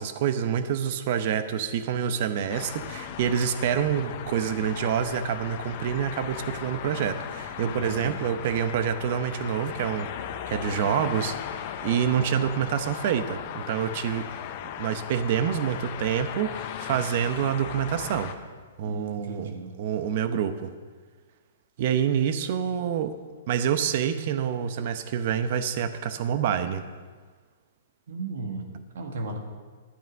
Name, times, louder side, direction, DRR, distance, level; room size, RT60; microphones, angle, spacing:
voice 1, 0.0-11.6 11.8-14.3 14.8-18.3 18.8-19.5 19.8-20.7 21.8-23.1 23.5-26.8, right 8 dB, 55° right, 10 dB, 0.9 m, -27 dB
sound 1, 2.5-18.3, left 9 dB, 45° left, 0.9 m, -37 dB
voice 2, 7.6-8.2 18.8-19.8 28.1-28.7 28.9-29.4, right 2 dB, 70° right, 3 dB, 2.0 m, -35 dB
11.5 x 9.2 x 5.3 m, 1.5 s
hypercardioid pair, 125°, 0 cm